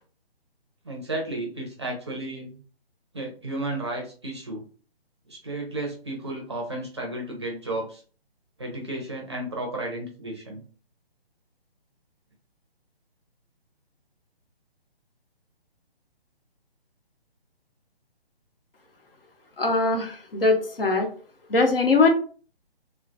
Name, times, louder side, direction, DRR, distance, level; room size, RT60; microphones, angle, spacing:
voice 1, 0.8-2.6 3.1-4.6 5.3-8.0 8.6-10.6, right 1 dB, 30° right, 0 dB, 0.5 m, -33 dB
voice 2, 19.6-21.1 21.5-22.1, left 3 dB, 65° left, 3 dB, 0.8 m, -21 dB
2.2 x 2.0 x 2.7 m, 0.40 s
figure-of-eight pair, 140°, 31 cm